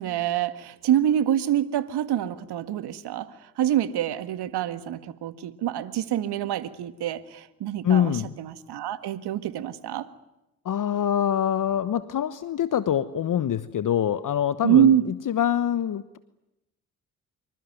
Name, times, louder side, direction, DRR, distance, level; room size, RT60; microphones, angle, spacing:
voice 1, 0.0-3.3 3.6-10.1 14.6-15.1, right 10 dB, 60° right, 11 dB, 1.8 m, -25 dB
voice 2, 7.8-8.3 10.6-16.2, left 10 dB, 45° left, 14 dB, 1.1 m, -25 dB
26.0 x 24.5 x 9.4 m, 0.93 s
hypercardioid pair, 45°, 44 cm